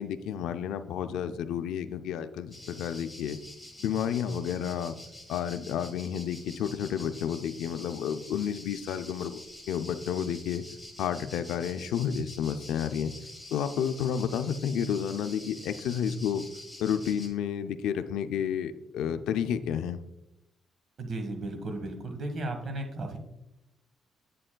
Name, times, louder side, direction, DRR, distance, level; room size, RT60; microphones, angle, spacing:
voice 1, 0.0-3.4 3.8-5.0 5.3-9.4 9.7-10.6 11.0-13.1 13.5-16.5 16.8-20.0, left 8 dB, 85° left, 10 dB, 0.4 m, -31 dB
sound 1, 2.5-17.3, left 1 dB, ahead, 1.7 m, -47 dB
voice 2, 21.0-23.2, right 2 dB, 55° right, 5 dB, 1.4 m, -35 dB
8.1 x 7.6 x 2.2 m, 0.89 s
cardioid pair, 90°, 0 cm